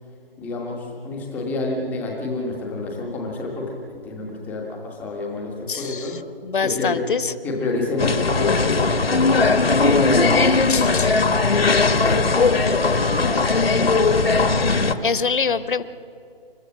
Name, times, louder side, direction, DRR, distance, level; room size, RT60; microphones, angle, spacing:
voice 1, 0.4-6.2 6.6-7.1 7.4-11.1 11.5-14.1, left 2 dB, ahead, -13 dB, 0.5 m, -29 dB
voice 2, 5.7-6.1 6.4-7.3 10.7-11.1 15.0-15.8, left 5 dB, 60° left, 15 dB, 1.0 m, -24 dB
sound 1, 8.0-14.9, left 3 dB, 80° left, 1.4 m, -18 dB
29.0 x 13.0 x 7.3 m, 2.5 s
figure-of-eight pair, 160°, 29 cm